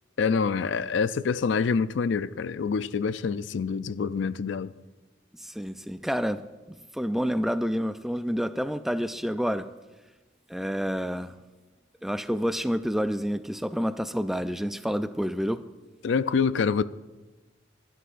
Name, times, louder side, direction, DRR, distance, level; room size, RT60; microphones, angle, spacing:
voice 1, 0.2-4.7 16.0-16.8, left 5 dB, 75° left, 0.4 m, -26 dB
voice 2, 5.4-6.4 6.7-9.6 10.5-11.3 12.0-15.6, equal, ahead, 0.4 m, -28 dB
26.5 x 11.5 x 2.6 m
head